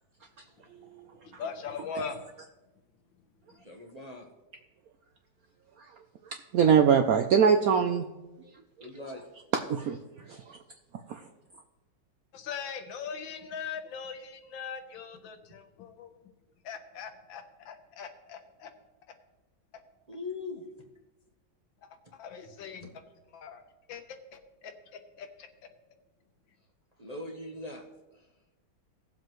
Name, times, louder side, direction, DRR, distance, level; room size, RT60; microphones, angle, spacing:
voice 1, 0.6-2.2 3.5-3.7 12.3-16.1 16.6-18.7 21.8-22.9 23.3-23.6 23.9-25.5, left 6 dB, 80° left, 7 dB, 1.7 m, -41 dB
voice 2, 3.6-4.3 8.8-9.2 20.1-20.7 27.0-27.8 28.1-28.3, left 2 dB, 30° right, 0 dB, 0.7 m, -41 dB
voice 3, 6.5-8.0 9.7-10.0 10.3-10.6 11.1-11.2, right 7 dB, 70° right, 5 dB, 0.8 m, -22 dB
18.0 x 7.5 x 3.1 m, 1.1 s
omnidirectional pair, 2.1 m